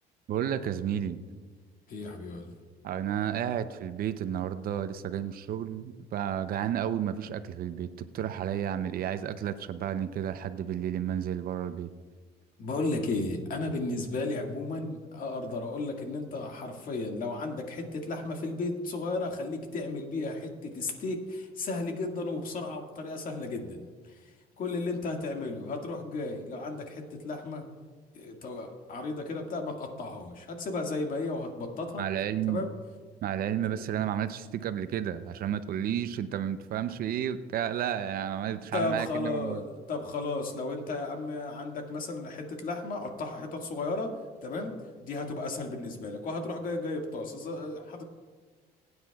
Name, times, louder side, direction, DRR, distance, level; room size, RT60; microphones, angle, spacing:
voice 1, 0.3-1.2 2.8-11.9 32.0-32.6 33.2-39.6, right 10 dB, 60° right, 11 dB, 0.6 m, -32 dB
voice 2, 1.9-2.6 12.6-27.7 28.1-32.1 32.5-32.7 33.7-33.9 38.7-44.1 44.4-48.0, left 2 dB, 55° left, 2 dB, 2.0 m, -34 dB
20.5 x 9.6 x 2.4 m, 1.5 s
cardioid pair, 110°, 17 cm